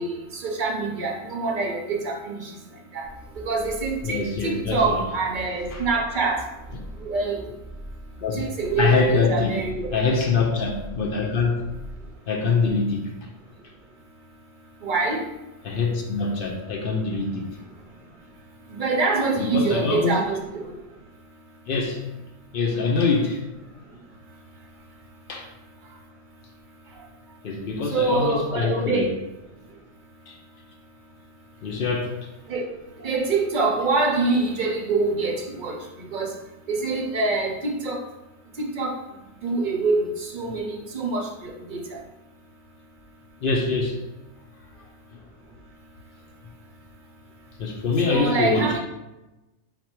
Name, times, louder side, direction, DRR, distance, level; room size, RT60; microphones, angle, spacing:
voice 1, 0.0-2.5 2.9-3.1 3.4-6.5 7.0-7.5 8.4-9.9 14.8-15.2 18.7-20.7 27.9-29.1 32.5-32.6 33.0-36.4 36.7-38.0 38.6-39.0 39.4-42.0 48.0-48.8, right 3 dB, 55° right, 0 dB, 0.6 m, -25 dB
sound 1, 3.0-12.2, right 1 dB, 45° left, 1.1 m, -41 dB
voice 2, 4.0-5.0 5.7-5.9 8.2-8.4 8.8-9.6 9.9-11.6 12.3-13.1 15.6-17.5 19.4-20.2 21.7-22.0 22.5-23.5 25.3-25.5 27.4-29.1 30.3-30.4 31.6-32.1 43.4-44.0 47.6-48.8, left 4 dB, 60° left, 2 dB, 0.6 m, -24 dB
4.1 x 2.2 x 4.4 m, 1.0 s
omnidirectional pair, 1.4 m